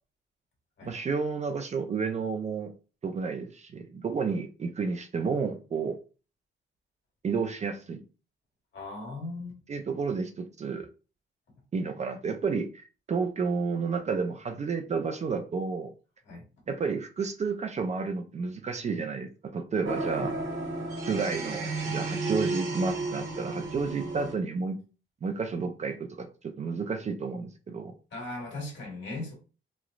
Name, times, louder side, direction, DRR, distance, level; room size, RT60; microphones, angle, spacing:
voice 1, 0.8-2.7 3.0-6.0 7.2-8.0 9.7-10.9 11.7-15.9 16.7-20.3 21.1-24.8 25.2-27.9, right 5 dB, 35° right, 0.3 m, -31 dB
voice 2, 8.7-9.6 16.3-16.4 20.2-20.3 28.1-29.3, left 2 dB, 65° left, 1.5 m, -38 dB
sound 1, 19.8-24.3, right 3 dB, 65° right, 1.1 m, -32 dB
3.0 x 3.0 x 2.4 m
wide cardioid pair, 170°, 21 cm